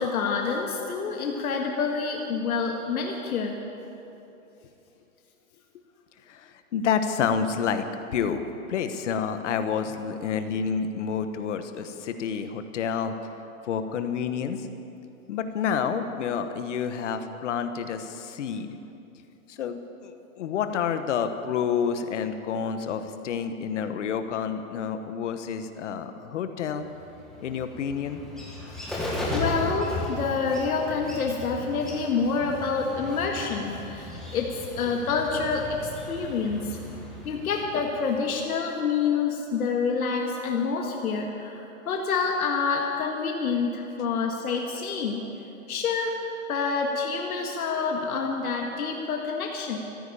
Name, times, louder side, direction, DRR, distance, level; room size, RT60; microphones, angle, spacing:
voice 1, 0.0-3.5 28.9-36.8 37.3-45.2 45.7-46.2 46.5-49.8, left 5 dB, 80° left, 1 dB, 1.9 m, -27 dB
voice 2, 6.3-7.9 8.1-8.4 8.7-13.1 13.7-14.7 15.3-18.8 19.5-26.9 27.4-28.2, left 7 dB, 55° left, 9 dB, 1.3 m, -29 dB
Bird, 26.8-38.3, left 1 dB, ahead, 1.6 m, -36 dB
14.5 x 10.0 x 8.7 m, 2.9 s
hypercardioid pair, 165°, 43 cm